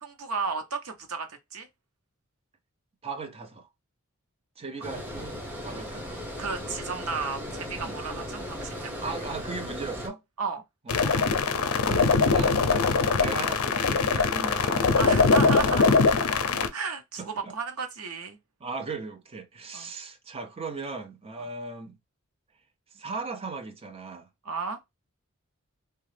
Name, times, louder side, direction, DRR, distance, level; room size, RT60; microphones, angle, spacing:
voice 1, 0.0-1.7 6.4-9.0 10.4-10.6 14.9-16.1 16.7-18.4 19.7-19.9 21.4-21.5 24.4-24.8, right 4 dB, 85° right, 0.8 m, -33 dB
voice 2, 3.0-3.7 4.6-6.2 7.8-8.0 9.0-10.2 10.9-11.4 11.7-12.7 13.2-15.2 17.2-17.5 18.6-22.0 22.9-24.3, right 4 dB, 25° right, 0.5 m, -38 dB
Water, 4.8-10.1, equal, 10° right, 0.9 m, -37 dB
sound 1, 10.9-16.7, left 4 dB, 70° left, 0.5 m, -22 dB
2.9 x 2.2 x 3.2 m
head